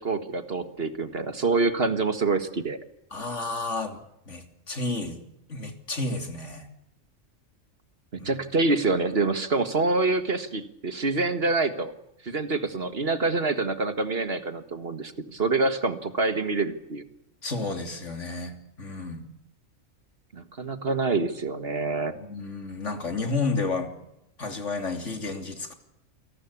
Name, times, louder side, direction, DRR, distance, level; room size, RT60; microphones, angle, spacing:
voice 1, 0.0-2.8 8.1-11.9 12.2-17.0 20.3-22.1, right 3 dB, 50° right, 11 dB, 1.8 m, -26 dB
voice 2, 3.1-5.2 5.5-6.7 8.2-8.3 17.4-19.3 22.1-23.9 24.4-25.7, left 3 dB, 70° left, 7 dB, 3.5 m, -31 dB
28.0 x 19.0 x 8.5 m, 0.80 s
omnidirectional pair, 1.3 m